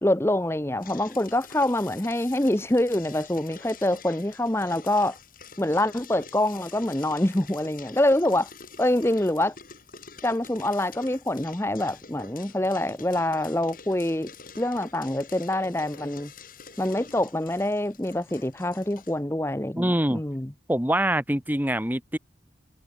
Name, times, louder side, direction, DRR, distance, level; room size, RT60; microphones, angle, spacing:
voice 1, 0.0-5.2 5.6-8.5 8.8-9.5 10.2-14.3 14.6-16.3 16.8-20.5, left 1 dB, 15° left, 0.8 m, -25 dB
sound 1, 0.8-19.2, left 5 dB, 45° left, 5.9 m, -47 dB
voice 2, 19.8-20.2 20.7-22.2, right 1 dB, 10° right, 1.5 m, -24 dB
head